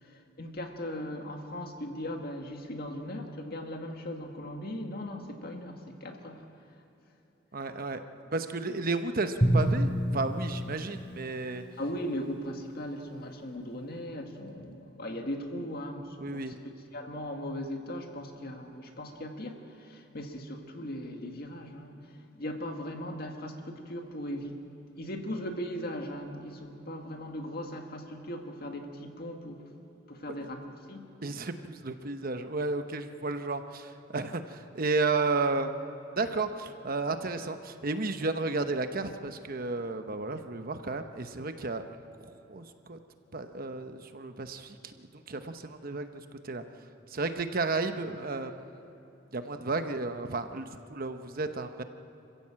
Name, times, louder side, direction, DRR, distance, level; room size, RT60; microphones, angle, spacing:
voice 1, 0.0-6.5 11.8-16.5 16.9-24.6 25.0-29.7 30.1-31.1, equal, 55° left, 3 dB, 2.0 m, -38 dB
voice 2, 7.5-8.0 8.3-11.6 16.2-16.6 31.2-35.7 36.2-41.8 42.2-43.0 43.3-46.6 47.1-48.5 49.3-51.8, right 3 dB, 50° right, 8 dB, 1.0 m, -33 dB
Drum, 9.4-12.4, right 1 dB, 25° left, 4.0 m, -29 dB
27.0 x 15.5 x 7.6 m, 2.9 s
head